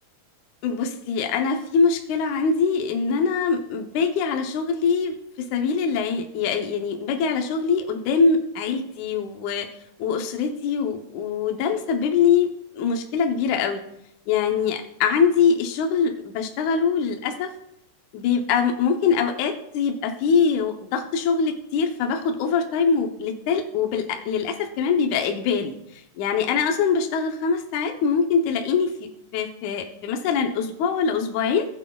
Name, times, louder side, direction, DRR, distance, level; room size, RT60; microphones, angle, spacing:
voice 1, 0.6-5.1 5.5-9.7 10.0-12.5 12.7-13.8 14.3-17.5 18.1-25.7 26.2-28.9 29.3-31.7, left 5 dB, 70° left, 3 dB, 2.1 m, -23 dB
18.5 x 8.3 x 2.3 m, 0.79 s
omnidirectional pair, 3.9 m